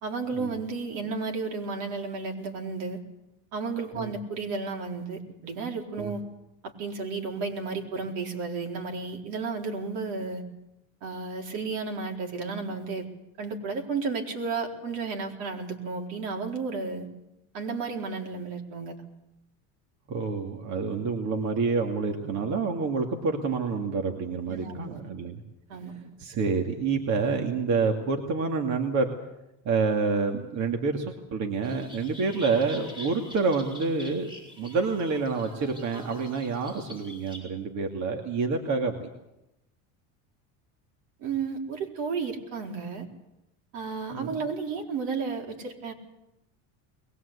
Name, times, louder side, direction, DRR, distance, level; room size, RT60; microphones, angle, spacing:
voice 1, 0.0-3.0 3.5-6.2 6.6-10.5 11.0-13.1 13.4-17.1 17.5-19.0 24.5-25.1 25.7-26.1 41.2-43.1 43.7-45.9, right 4 dB, 75° right, 2 dB, 4.4 m, -33 dB
voice 2, 20.1-25.4 26.2-29.1 29.6-34.3 34.6-39.1 44.1-44.4, right 4 dB, 45° right, 3 dB, 2.6 m, -28 dB
sound 1, 31.6-37.4, left 1 dB, 10° right, 8.0 m, -46 dB
22.0 x 20.5 x 8.4 m, 0.89 s
cardioid pair, 135°, 38 cm